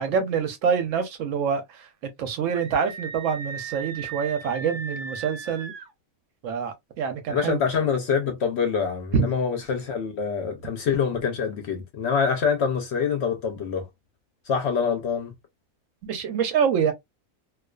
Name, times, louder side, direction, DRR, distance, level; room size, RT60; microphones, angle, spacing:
voice 1, 0.0-5.7 6.4-7.6 9.1-9.3 16.0-16.9, right 6 dB, 70° right, 0.9 m, -26 dB
Screaming, 2.5-5.9, right 5 dB, 50° right, 0.6 m, -37 dB
voice 2, 7.3-13.9 14.4-15.3, left 6 dB, 65° left, 0.7 m, -25 dB
2.3 x 2.3 x 2.2 m
omnidirectional pair, 1.5 m